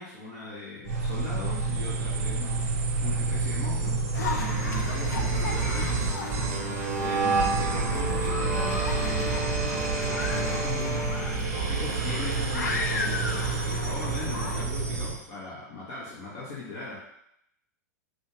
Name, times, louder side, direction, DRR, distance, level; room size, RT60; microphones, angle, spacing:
voice 1, 0.0-2.7 3.0-6.0 7.0-9.8 10.5-11.0 11.7-17.0, left 3 dB, 50° left, -6 dB, 1.0 m, -39 dB
sound 1, 0.8-15.2, right 4 dB, 55° right, 0.7 m, -28 dB
sound 2, 4.1-14.6, left 4 dB, 70° left, 0.5 m, -35 dB
Wind instrument woodwind instrument, 7.9-11.4, right 1 dB, 5° right, 0.9 m, -34 dB
4.0 x 2.4 x 3.3 m, 0.77 s
figure-of-eight pair, 100°, 9 cm